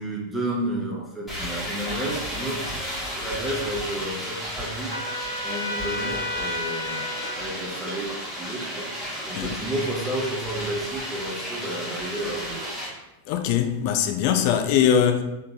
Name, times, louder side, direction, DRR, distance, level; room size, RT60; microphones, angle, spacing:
voice 1, 0.0-2.7 3.2-12.7, right 1 dB, 5° right, 1.0 m, -31 dB
sound 1, 1.3-12.9, equal, 10° left, 1.5 m, -33 dB
Trumpet, 4.9-7.4, left 2 dB, 80° right, 0.4 m, -31 dB
voice 2, 13.3-15.2, left 8 dB, 45° left, 0.3 m, -21 dB
3.8 x 3.2 x 2.8 m
figure-of-eight pair, 90°, 0 cm